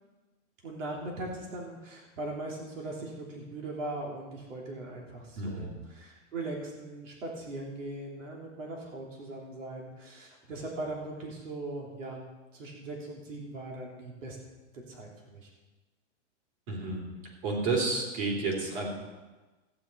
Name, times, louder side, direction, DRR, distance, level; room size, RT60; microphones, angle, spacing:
voice 1, 0.6-12.2 12.5-14.4 14.9-15.5, right 2 dB, 90° right, -1 dB, 3.3 m, -40 dB
voice 2, 5.4-5.7 16.7-17.0 17.4-18.9, right 3 dB, 45° right, -1 dB, 3.8 m, -30 dB
14.0 x 9.7 x 4.6 m, 1.2 s
supercardioid pair, 160°, 37 cm